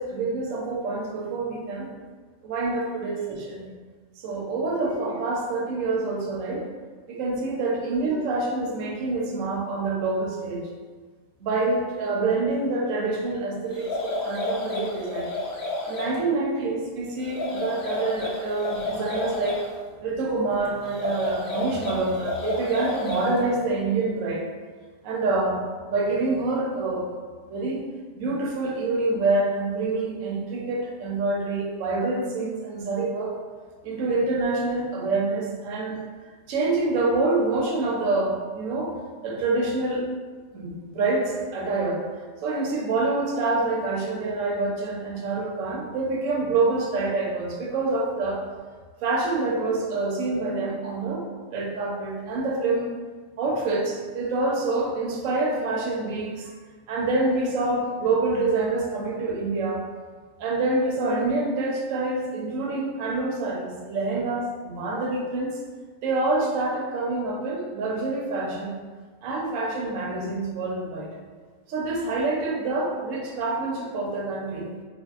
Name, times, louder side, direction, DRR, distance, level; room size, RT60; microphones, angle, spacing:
voice 1, 0.0-1.9 2.4-3.7 4.2-6.7 7.1-10.7 11.4-15.3 15.9-19.6 20.0-24.5 25.0-25.6 25.9-27.1 27.5-27.8 28.2-33.3 33.8-36.0 36.5-38.9 39.2-40.0 40.5-42.0 42.4-48.4 49.0-51.3 51.5-53.0 53.4-56.5 56.9-59.9 60.4-65.6 66.0-68.8 69.2-71.1 71.7-74.7, right 3 dB, 75° right, -1 dB, 0.9 m, -26 dB
sound 1, 13.7-16.2 17.2-19.7 20.8-23.4, left 2 dB, 60° left, 0.8 m, -31 dB
3.4 x 2.3 x 2.3 m, 1.5 s
omnidirectional pair, 1.4 m